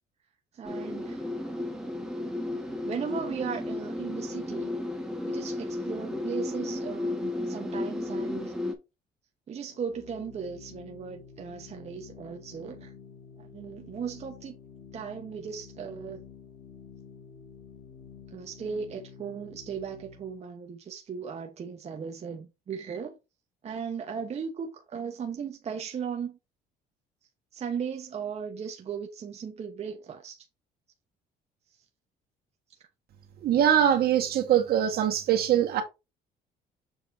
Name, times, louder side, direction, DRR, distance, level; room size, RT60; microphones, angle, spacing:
voice 1, 0.5-1.2 2.9-4.8 5.2-8.5 9.5-12.9 13.4-14.6 14.9-16.2 18.3-23.2 23.6-26.4 27.5-30.5, right 6 dB, 40° right, 1.0 m, -37 dB
sound 1, 0.6-8.7, left 1 dB, 5° right, 1.7 m, -33 dB
Organ, 9.7-20.5, left 6 dB, 85° left, 1.9 m, -49 dB
voice 2, 33.4-35.8, right 10 dB, 65° right, 1.8 m, -23 dB
7.1 x 4.0 x 3.7 m
cardioid pair, 110°, 17 cm